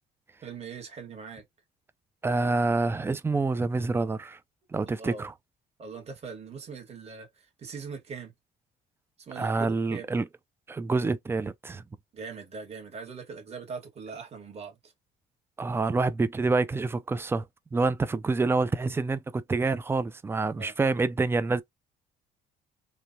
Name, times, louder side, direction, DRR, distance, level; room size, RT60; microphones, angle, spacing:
voice 1, 0.4-1.4 4.8-5.3 5.8-8.3 9.2-10.1 12.1-14.9 20.6-20.7, right 5 dB, 40° right, 1.4 m, -41 dB
voice 2, 2.2-4.4 4.7-5.3 9.4-10.2 10.7-11.8 15.6-17.4 17.7-21.6, right 3 dB, 15° right, 0.3 m, -27 dB
3.2 x 2.1 x 2.6 m
cardioid pair, 110°, 17 cm